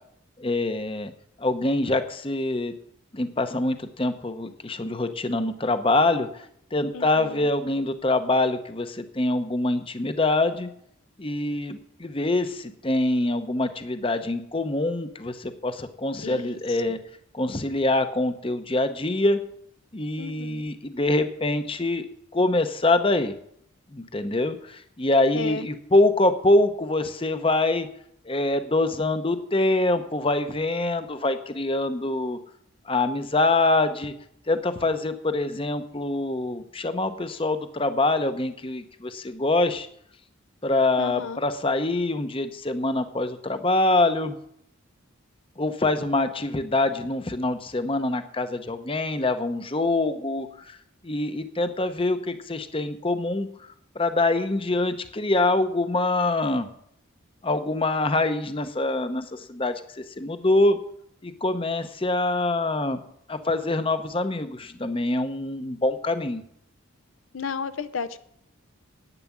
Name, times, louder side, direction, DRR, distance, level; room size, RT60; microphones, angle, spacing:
voice 1, 0.4-1.1 1.4-2.7 3.1-10.7 11.2-17.0 17.3-19.4 19.9-22.1 22.3-23.3 23.9-27.9 28.2-32.4 32.9-34.1 34.5-39.9 40.6-44.4 45.6-50.8 51.0-56.7 57.4-60.8 61.2-63.0 63.3-66.4, left 2 dB, 25° left, 10 dB, 0.8 m, -25 dB
voice 2, 6.9-7.5 16.2-16.8 20.2-20.6 25.3-25.7 41.0-41.4 67.3-68.2, left 5 dB, 70° left, 12 dB, 0.6 m, -33 dB
11.0 x 9.3 x 7.3 m, 0.72 s
head